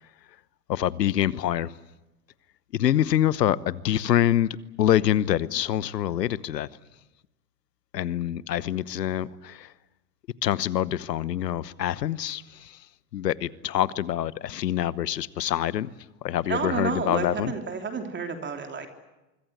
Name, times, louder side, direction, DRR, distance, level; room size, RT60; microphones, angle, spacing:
voice 1, 0.7-1.7 2.7-4.5 4.8-6.7 7.9-9.7 10.4-12.8 13.1-15.9 16.2-17.5, left 11 dB, 80° left, 19 dB, 1.1 m, -25 dB
voice 2, 16.5-18.9, right 5 dB, 20° right, 5 dB, 3.2 m, -30 dB
25.0 x 23.5 x 8.0 m, 1.0 s
hypercardioid pair, 100°, 48 cm